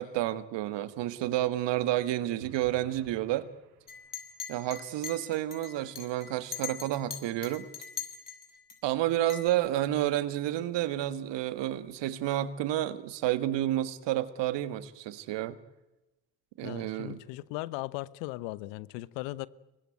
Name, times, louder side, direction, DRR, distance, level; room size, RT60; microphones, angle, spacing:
voice 1, 0.0-3.5 4.5-7.7 8.8-15.6 16.6-17.2, right 13 dB, 70° right, 1.8 m, -30 dB
sound 1, 2.4-4.4, right 8 dB, 85° right, 2.1 m, -53 dB
Chink clink, 3.9-8.7 9.3-9.5, left 7 dB, 45° left, 6.5 m, -40 dB
voice 2, 16.6-19.5, left 19 dB, 75° left, 0.9 m, -38 dB
24.5 x 20.0 x 9.2 m
hypercardioid pair, 50°, 45 cm